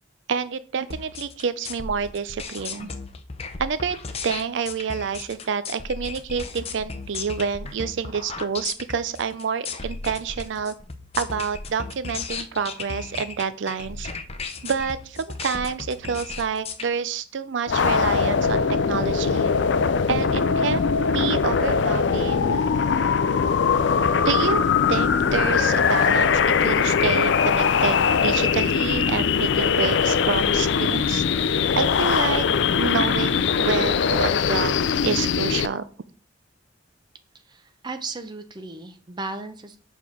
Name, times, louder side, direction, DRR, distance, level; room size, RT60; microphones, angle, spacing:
voice 1, 0.3-2.9 3.6-4.0 4.2-10.7 11.2-14.1 14.6-19.5 20.1-22.6 24.2-24.6 24.9-31.2 31.8-32.4 32.8-34.8 35.0-35.8, right 6 dB, 70° right, 14 dB, 0.4 m, -28 dB
sound 1, 0.9-16.8, left 4 dB, 30° left, 0.7 m, -35 dB
sound 2, 17.7-35.7, left 6 dB, 65° left, 0.4 m, -21 dB
voice 2, 37.5-39.8, right 3 dB, 25° right, 8 dB, 0.6 m, -35 dB
6.7 x 3.6 x 6.1 m, 0.42 s
head